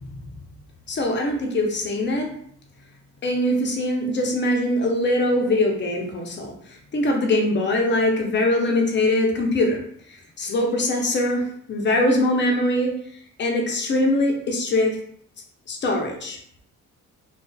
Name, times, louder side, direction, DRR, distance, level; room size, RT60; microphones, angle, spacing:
voice 1, 0.9-2.3 3.2-6.5 6.9-9.8 10.4-13.0 13.4-15.0 15.7-16.4, left 1 dB, 35° left, 1 dB, 0.6 m, -22 dB
2.5 x 2.3 x 2.3 m, 0.64 s
cardioid pair, 90°, 30 cm